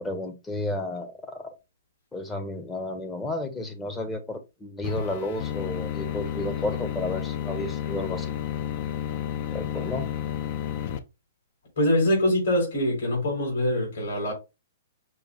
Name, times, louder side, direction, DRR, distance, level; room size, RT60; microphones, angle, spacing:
voice 1, 0.0-1.5 2.1-8.3 9.5-10.1, left 2 dB, 10° left, 0.8 m, -32 dB
sound 1, 4.8-11.0, left 11 dB, 45° left, 0.5 m, -31 dB
voice 2, 11.8-14.3, left 1 dB, 60° left, 2.8 m, -24 dB
5.9 x 2.0 x 3.5 m
hypercardioid pair, 155°, 0 cm